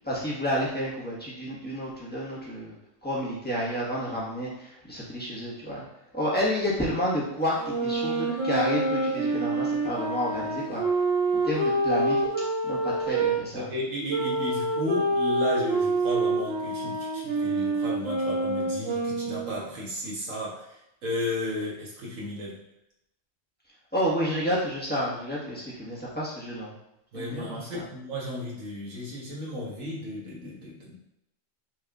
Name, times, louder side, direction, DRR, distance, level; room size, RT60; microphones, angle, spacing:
voice 1, 0.0-2.7 3.0-5.8 6.1-10.8 11.4-12.2 12.6-13.7 23.9-26.7 27.1-27.8, equal, 5° left, -7 dB, 1.4 m, -30 dB
sound 1, 7.6-13.4 14.1-19.6, right 2 dB, 50° right, 1.3 m, -27 dB
voice 2, 13.5-20.8 21.0-22.6 27.1-30.9, left 1 dB, 70° right, -5 dB, 1.7 m, -34 dB
6.0 x 3.4 x 2.5 m, 0.83 s
omnidirectional pair, 1.4 m